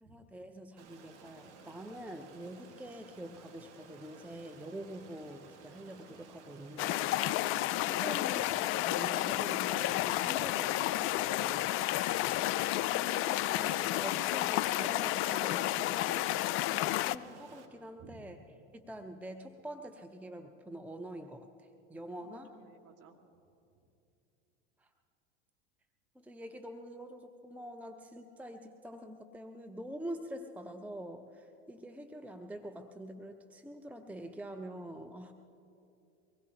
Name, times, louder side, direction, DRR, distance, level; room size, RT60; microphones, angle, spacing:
voice 1, 0.0-7.5 7.8-11.7 12.4-16.2 17.1-18.4 18.7-22.5 26.2-35.3, right 1 dB, 5° right, 7 dB, 0.7 m, -46 dB
Stream, 0.8-17.7, right 4 dB, 80° right, 1.9 m, -55 dB
sound 1, 6.8-17.2, left 16 dB, 40° left, 0.4 m, -31 dB
voice 2, 11.7-12.4 16.2-16.9 18.0-18.3 22.2-23.2 23.7-23.9, right 2 dB, 45° right, 3 dB, 2.1 m, -57 dB
24.0 x 20.0 x 2.9 m, 2.7 s
hypercardioid pair, 85°, 34 cm